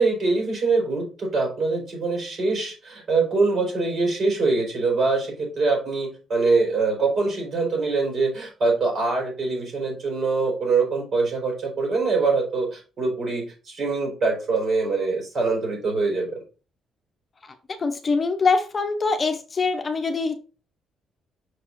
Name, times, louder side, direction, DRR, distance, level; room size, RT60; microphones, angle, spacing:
voice 1, 0.0-16.3, right 3 dB, 50° right, -1 dB, 3.8 m, -24 dB
voice 2, 17.8-20.4, left 4 dB, 30° left, 6 dB, 0.8 m, -23 dB
6.0 x 4.8 x 3.8 m, 0.35 s
cardioid pair, 120°, 0 cm